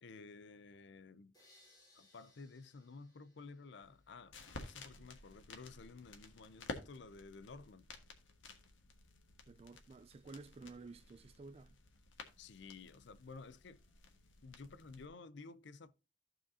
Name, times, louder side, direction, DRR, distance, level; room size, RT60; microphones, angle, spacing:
voice 1, 0.0-1.3 1.9-7.9 12.4-13.8 14.4-15.9, left 4 dB, 65° left, 0.5 m, -53 dB
sound 1, 1.3-4.4, left 2 dB, 20° left, 3.9 m, -69 dB
sound 2, 3.8-15.1, left 3 dB, 85° left, 1.5 m, -53 dB
voice 2, 9.5-11.8, right 3 dB, 30° right, 0.3 m, -53 dB
14.5 x 5.0 x 2.7 m
head